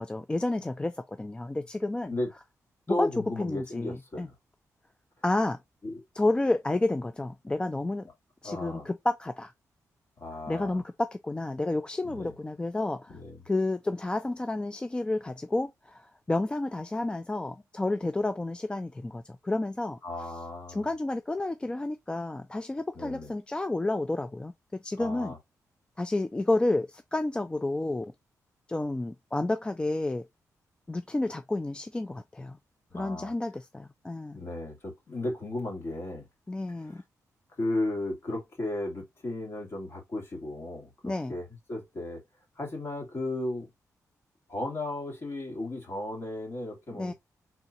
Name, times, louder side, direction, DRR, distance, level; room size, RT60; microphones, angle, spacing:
voice 1, 0.0-2.1 2.9-3.1 3.4-4.3 5.2-5.6 6.2-8.1 8.4-9.5 10.5-13.2 13.5-20.0 20.7-25.3 26.0-28.1 28.7-30.3 30.9-32.6 32.9-34.4 36.5-37.0 41.0-41.3 46.9-47.1, left 2 dB, 15° left, 0.4 m, -30 dB
voice 2, 2.9-4.3 5.8-6.0 8.4-8.9 10.2-10.8 12.0-12.3 13.1-13.4 20.0-20.9 22.9-23.3 25.0-25.4 32.9-33.3 34.3-36.3 36.7-37.0 37.6-42.2 42.6-43.7 44.5-47.1, left 2 dB, 45° left, 2.8 m, -35 dB
4.5 x 3.7 x 2.7 m
cardioid pair, 105°, 6 cm